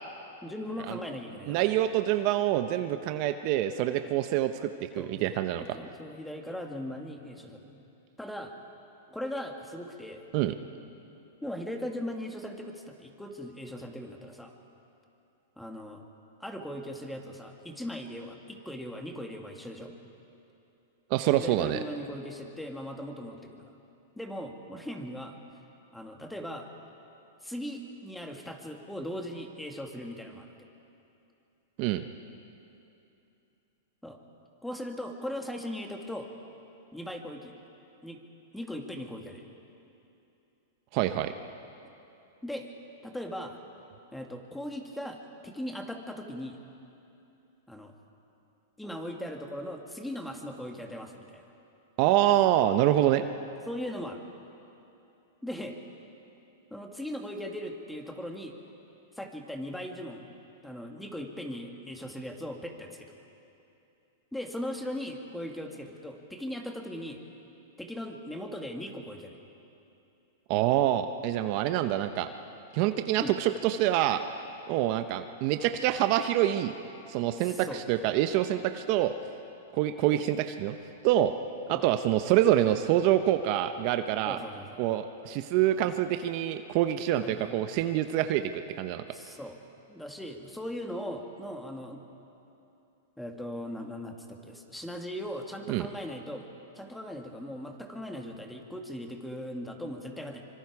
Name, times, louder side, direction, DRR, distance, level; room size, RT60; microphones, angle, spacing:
voice 1, 0.4-1.6 5.0-5.2 5.6-7.8 8.2-8.5 9.1-10.2 11.4-14.5 15.6-16.0 16.4-19.9 21.4-23.7 24.2-25.4 25.9-26.7 27.4-30.5 34.0-34.2 34.6-36.3 36.9-37.6 38.0-38.2 38.5-39.5 42.4-42.7 43.0-43.6 44.1-46.6 47.7-47.9 48.8-51.4 53.7-54.2 55.4-55.8 56.7-58.6 59.1-60.3 60.6-63.2 64.3-67.2 67.8-69.4 73.2-73.3 77.4-77.8 81.7-81.8 84.2-84.8 85.8-86.0 87.2-87.6 89.1-89.6 89.9-92.0 93.2-96.5 96.7-100.4, equal, 5° left, 3 dB, 1.9 m, -39 dB
voice 2, 1.5-5.6 10.3-10.5 21.1-21.8 31.8-32.0 40.9-41.3 52.0-53.2 70.5-72.3 72.7-74.2 74.7-76.7 77.1-79.1 79.7-80.7 81.0-81.3 81.7-84.4 84.8-89.0 95.7-95.9, right 12 dB, 45° right, 9 dB, 0.8 m, -26 dB
25.0 x 24.5 x 4.8 m, 2.8 s
hypercardioid pair, 135°, 0 cm